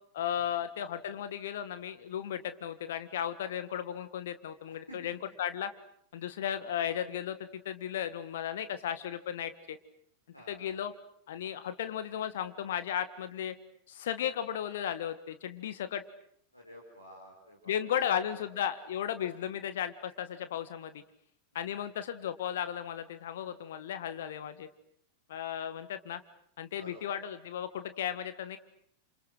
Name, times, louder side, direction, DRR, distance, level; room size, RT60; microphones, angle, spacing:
voice 1, 0.1-5.7 6.1-9.8 10.5-10.9 11.3-13.5 13.9-16.0 17.7-21.0 21.5-24.7 25.3-26.2 26.6-28.6, left 9 dB, 60° left, 11 dB, 1.6 m, -35 dB
voice 2, 10.3-10.7 16.5-18.0 18.4-18.5 21.7-21.9 25.6-25.7 26.7-27.1, equal, 85° left, 0 dB, 5.1 m, -52 dB
29.5 x 28.0 x 6.4 m, 0.65 s
figure-of-eight pair, 90°, 0 cm